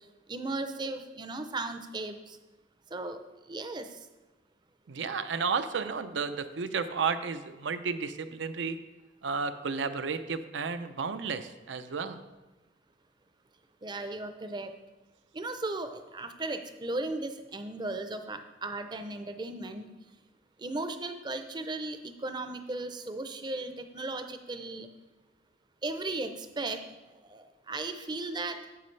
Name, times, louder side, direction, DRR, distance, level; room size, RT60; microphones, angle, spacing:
voice 1, 0.3-2.4 2.9-4.0 13.8-14.7 15.3-19.9 20.6-24.9 25.8-26.9 27.1-28.7, right 2 dB, 25° right, 8 dB, 0.5 m, -36 dB
voice 2, 4.9-8.8 9.2-12.2, right 5 dB, 85° right, 10 dB, 0.5 m, -32 dB
9.4 x 7.5 x 3.2 m, 1.1 s
head